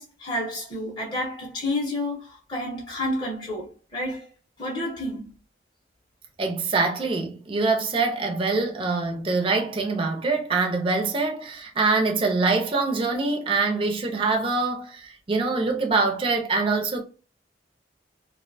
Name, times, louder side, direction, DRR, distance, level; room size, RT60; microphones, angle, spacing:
voice 1, 0.0-4.3 4.6-5.3, left 1 dB, 25° left, 0.6 m, -30 dB
voice 2, 6.4-17.0, right 3 dB, 30° right, 0.4 m, -24 dB
2.4 x 2.1 x 2.5 m
head